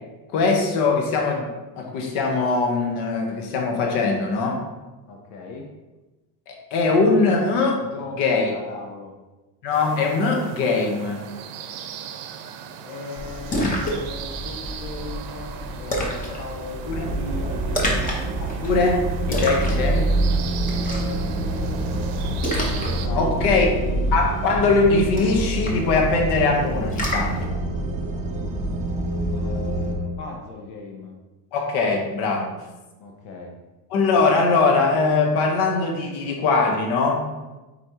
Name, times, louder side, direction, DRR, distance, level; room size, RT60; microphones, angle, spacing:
voice 1, 0.3-1.5 1.7-4.6 6.5-7.8 8.2-8.5 9.6-11.2 16.9-17.1 18.6-19.0 19.3-20.1 23.1-23.7 24.1-27.5 31.5-32.5 33.9-37.3, left 3 dB, 65° left, 1 dB, 1.3 m, -21 dB
voice 2, 5.1-5.7 7.8-9.1 12.8-18.4 20.7-22.1 22.8-24.1 29.3-31.1 33.0-33.6, left 3 dB, 85° left, 0 dB, 1.1 m, -37 dB
sound 1, 9.7-23.1, right 8 dB, 70° right, 0.7 m, -38 dB
Splash splatter, 13.2-27.4, right 1 dB, 20° left, 0.8 m, -28 dB
sound 2, 16.9-30.0, right 1 dB, 20° right, 0.5 m, -28 dB
8.4 x 4.3 x 3.1 m, 1.1 s
cardioid pair, 175°, 43 cm